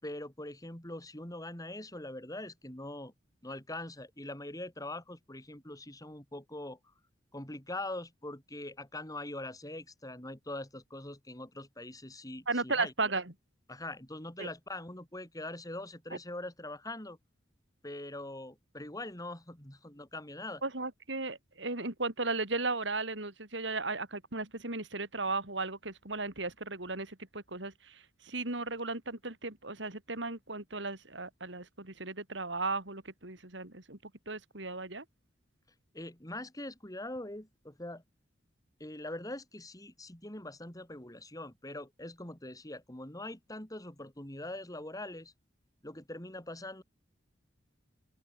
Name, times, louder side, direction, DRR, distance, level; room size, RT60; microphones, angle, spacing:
voice 1, 0.0-3.1 3.4-6.8 7.3-12.9 13.7-17.2 17.8-20.6 35.9-38.0 38.8-45.3 45.8-46.8, left 1 dB, 20° left, 4.5 m, -42 dB
voice 2, 12.5-13.2 14.4-14.5 20.6-28.0 28.2-34.0 34.3-35.0, right 3 dB, 70° right, 4.5 m, -35 dB
open air
head